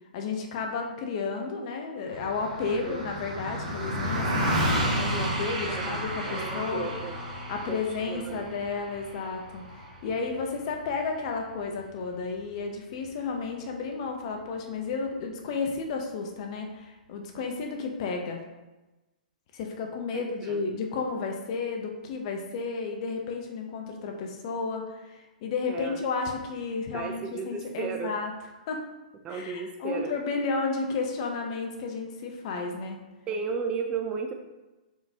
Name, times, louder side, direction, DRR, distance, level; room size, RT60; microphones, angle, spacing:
voice 1, 0.1-6.9 7.5-18.4 19.5-28.3 28.7-28.8 29.3-33.0, left 4 dB, 45° left, 2 dB, 0.7 m, -32 dB
Car passing by, 2.1-11.7, equal, 50° right, 1.5 m, -32 dB
voice 2, 2.7-3.0 5.7-7.2 7.7-7.8 8.1-8.5 20.1-20.6 25.7-26.0 26.9-28.1 29.2-30.1 33.3-34.3, right 5 dB, 20° right, 4 dB, 0.4 m, -34 dB
4.5 x 3.8 x 2.8 m, 1.1 s
figure-of-eight pair, 120°, 5 cm